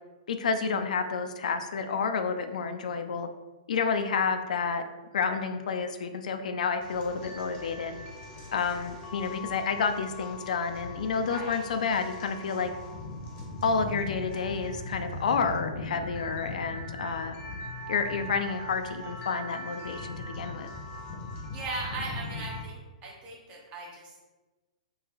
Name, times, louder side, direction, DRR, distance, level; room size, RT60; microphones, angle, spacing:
voice 1, 0.3-3.3 3.7-4.8 5.1-7.9 8.5-12.7 13.6-17.4 17.9-20.7, left 5 dB, 70° left, 8 dB, 0.4 m, -30 dB
sound 1, 6.8-22.6, left 2 dB, 25° left, 0.8 m, -40 dB
voice 2, 11.3-11.6 21.5-24.1, right 2 dB, 30° right, -2 dB, 1.1 m, -38 dB
3.6 x 2.9 x 3.1 m, 1.2 s
hypercardioid pair, 130°, 4 cm